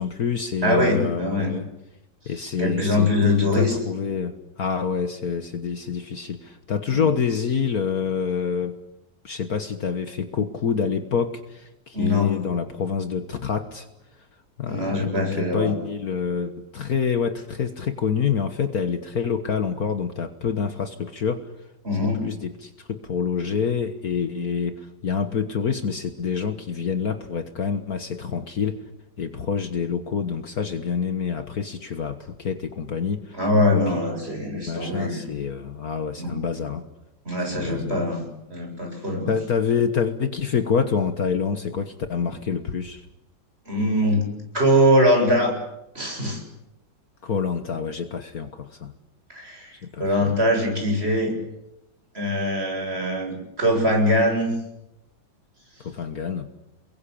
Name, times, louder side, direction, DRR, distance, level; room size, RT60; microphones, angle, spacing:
voice 1, 0.0-1.7 2.3-8.8 9.2-13.9 14.6-21.4 22.2-28.8 29.2-33.4 33.7-34.0 34.4-36.9 37.5-38.0 39.3-43.0 47.2-48.9 49.9-50.3 55.8-56.5, left 6 dB, 55° left, 9 dB, 1.8 m, -27 dB
voice 2, 0.6-1.5 2.6-3.8 6.9-7.1 11.9-12.3 14.7-15.7 21.8-22.2 33.3-35.2 36.2-36.3 37.2-38.2 38.5-39.3 43.7-45.5 45.9-46.4 49.3-49.7 50.0-51.3 52.1-54.5, left 1 dB, 30° right, 2 dB, 8.1 m, -22 dB
29.5 x 22.0 x 8.6 m, 0.89 s
omnidirectional pair, 2.0 m